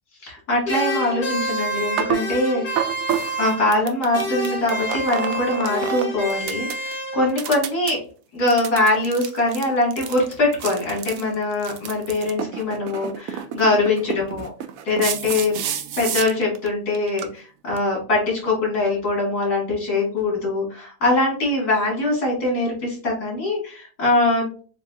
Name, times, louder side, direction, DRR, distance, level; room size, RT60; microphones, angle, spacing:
voice 1, 0.2-2.9 3.4-8.0 8.3-14.5 14.9-15.6 16.0-24.5, left 2 dB, 70° left, -3 dB, 2.9 m, -22 dB
sound 1, 0.6-7.5, right 1 dB, 45° left, 1.4 m, -28 dB
sound 2, 2.0-2.2 2.8-6.0 6.3-6.9 7.3-7.9 8.5-16.7 16.9-17.2 17.8-17.9, right 9 dB, 70° right, 0.9 m, -29 dB
6.9 x 2.8 x 2.5 m, 0.38 s
omnidirectional pair, 1.7 m